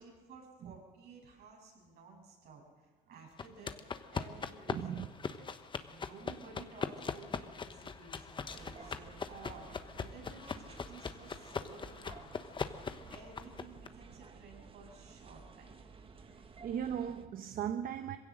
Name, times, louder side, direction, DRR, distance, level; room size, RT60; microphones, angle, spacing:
voice 1, 0.0-5.1 5.4-5.5 5.7-12.4 13.1-15.8, right 4 dB, 70° right, 7.3 m, -54 dB
sound 1, 3.4-13.9, left 5 dB, 30° left, 1.0 m, -41 dB
voice 2, 4.7-5.1 16.3-18.2, right 9 dB, 55° right, 1.0 m, -38 dB
sound 2, 8.5-17.3, right 4 dB, 30° right, 1.4 m, -54 dB
22.0 x 16.5 x 7.7 m
cardioid pair, 110°, 17 cm